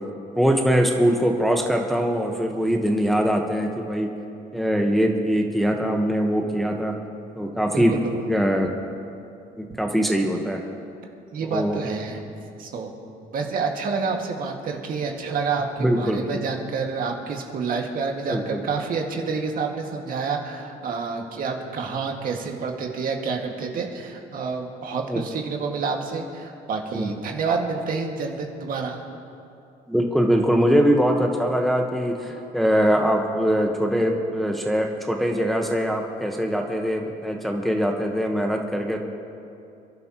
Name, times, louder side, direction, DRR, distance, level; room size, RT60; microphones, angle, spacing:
voice 1, 0.4-4.1 4.5-6.9 7.3-7.9 8.3-8.7 9.6-10.6 11.5-11.8 15.8-16.4 18.3-18.6 25.1-25.2 26.9-27.1 29.9-39.0, equal, ahead, 1 dB, 1.2 m, -22 dB
voice 2, 7.7-8.2 11.3-12.2 12.6-12.9 13.3-29.0, right 4 dB, 55° right, 1 dB, 2.0 m, -28 dB
28.0 x 11.5 x 3.0 m, 2.6 s
cardioid pair, 110°, 17 cm